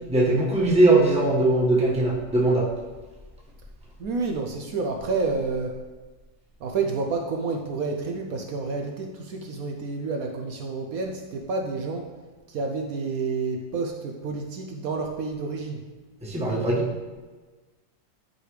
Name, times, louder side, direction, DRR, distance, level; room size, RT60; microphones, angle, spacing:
voice 1, 0.1-2.6 16.2-16.9, right 2 dB, 5° right, -5 dB, 1.1 m, -20 dB
voice 2, 4.0-5.8 6.6-12.1 12.5-15.8, right 4 dB, 70° right, 2 dB, 0.8 m, -29 dB
9.9 x 4.9 x 3.2 m, 1.3 s
omnidirectional pair, 2.1 m